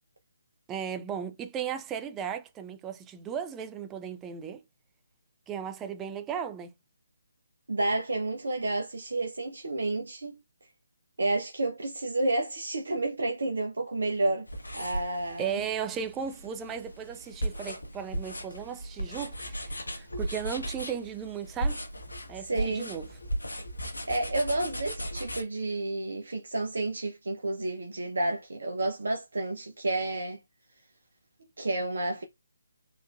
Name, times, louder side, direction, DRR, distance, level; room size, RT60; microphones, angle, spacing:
voice 1, 0.7-4.6 5.5-6.7 15.4-21.8 22.3-23.1, right 8 dB, 15° right, 0.4 m, -36 dB
voice 2, 7.7-10.4 11.2-14.5 14.7-15.5 22.4-22.9 24.1-30.4 31.6-32.2, right 2 dB, 70° right, 0.7 m, -30 dB
sound 1, 14.5-25.4, right 1 dB, 85° left, 1.1 m, -36 dB
4.0 x 2.5 x 2.4 m
figure-of-eight pair, 150°, 0 cm